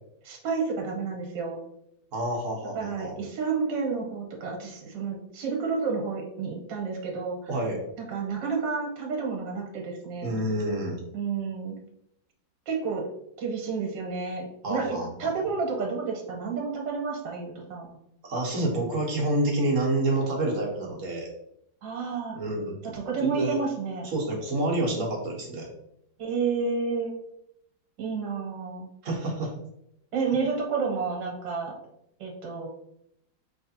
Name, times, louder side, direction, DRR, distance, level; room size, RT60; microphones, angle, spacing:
voice 1, 0.2-1.6 2.7-7.4 8.0-10.4 11.1-11.8 12.7-13.1 13.4-17.9 21.8-22.4 22.8-24.1 26.2-27.1 28.0-28.9 30.1-31.7 32.2-32.7, right 5 dB, 70° right, 0 dB, 1.7 m, -30 dB
voice 2, 2.1-3.2 7.5-7.8 10.2-11.0 14.6-15.3 18.2-21.3 22.3-22.8 23.2-23.6 24.0-25.7 29.0-29.5, right 1 dB, 50° right, -2 dB, 1.3 m, -28 dB
5.1 x 3.3 x 2.8 m, 0.78 s
omnidirectional pair, 2.1 m